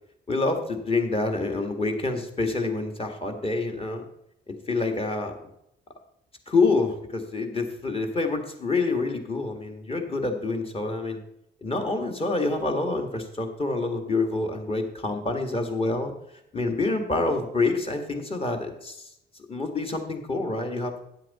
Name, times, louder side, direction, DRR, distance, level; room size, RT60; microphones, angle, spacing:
voice 1, 0.3-4.0 4.5-5.3 6.5-11.2 11.6-16.1 16.5-19.1 19.5-20.9, left 3 dB, 30° left, 4 dB, 1.8 m, -27 dB
10.0 x 7.7 x 4.2 m, 0.78 s
cardioid pair, 90°, 20 cm